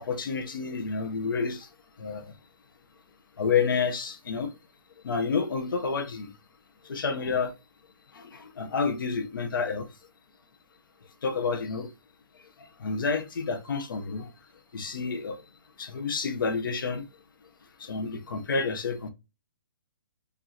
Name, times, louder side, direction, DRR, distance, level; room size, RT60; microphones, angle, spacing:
voice 1, 0.0-1.7 2.0-2.2 3.4-4.5 5.0-6.3 6.8-7.5 8.1-9.9 11.2-11.9 12.8-14.3 14.7-15.4 15.8-17.0 17.8-19.1, left 5 dB, 80° left, 1.0 m, -29 dB
5.2 x 2.7 x 2.9 m
hypercardioid pair, 180°, 11 cm